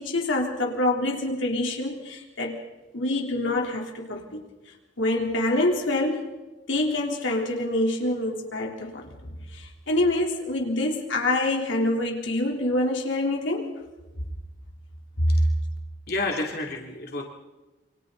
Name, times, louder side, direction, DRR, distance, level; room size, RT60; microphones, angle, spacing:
voice 1, 0.0-2.6 2.9-4.4 5.0-6.3 6.7-13.7 15.2-15.4, left 1 dB, 85° left, 0 dB, 3.6 m, -26 dB
voice 2, 16.1-17.2, left 2 dB, 50° left, 0 dB, 2.9 m, -30 dB
28.0 x 26.0 x 4.0 m, 1.1 s
head